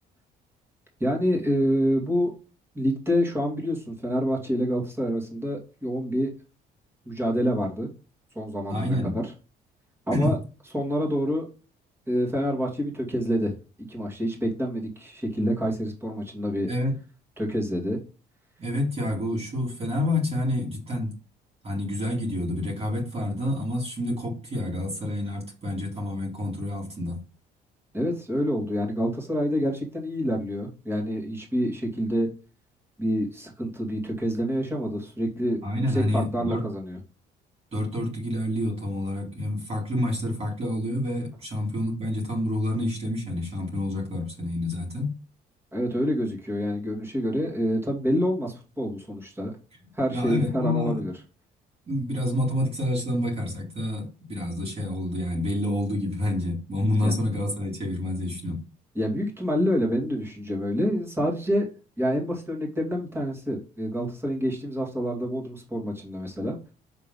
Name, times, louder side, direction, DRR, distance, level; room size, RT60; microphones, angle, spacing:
voice 1, 1.0-2.3 2.7-6.3 7.1-7.9 8.4-9.3 10.1-10.4 10.7-11.5 12.1-13.5 13.9-16.7 17.4-18.0 27.9-32.3 33.0-35.6 35.9-37.0 45.7-49.5 49.9-51.1 57.0-57.1 58.9-61.7 62.0-66.6, equal, 15° right, -1 dB, 2.3 m, -27 dB
voice 2, 8.7-9.2 10.1-10.3 16.7-16.9 18.6-21.1 21.6-27.2 35.6-36.6 37.7-45.1 50.1-51.1 51.9-58.6, left 1 dB, 35° right, -1 dB, 2.4 m, -28 dB
5.8 x 3.7 x 5.4 m, 0.33 s
cardioid pair, 110°, 17 cm